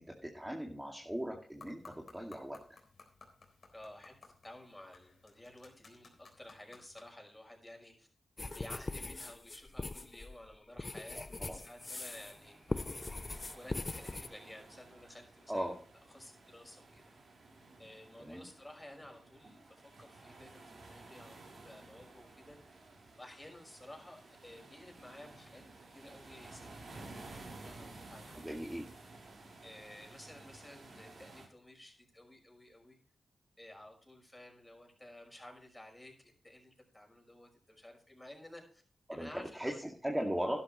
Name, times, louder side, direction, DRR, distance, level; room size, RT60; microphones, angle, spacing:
voice 1, 0.0-2.6 11.4-11.6 15.5-15.8 18.2-18.4 28.4-28.9 39.1-40.6, equal, 10° right, 0 dB, 2.2 m, -38 dB
sound 1, 1.5-7.1, left 4 dB, 60° left, 3.8 m, -59 dB
voice 2, 3.7-8.1 8.5-12.5 13.5-15.7 16.1-17.0 17.8-22.6 23.2-25.6 25.9-28.4 29.6-33.0 33.6-38.8 39.1-39.8, left 1 dB, 15° left, 2 dB, 5.5 m, -53 dB
sound 2, 8.4-12.4 12.7-14.3, left 3 dB, 35° left, 0.6 m, -41 dB
sound 3, 11.8-31.5, right 2 dB, 75° right, 4.4 m, -54 dB
12.0 x 12.0 x 3.1 m, 0.43 s
cardioid pair, 60°, 0 cm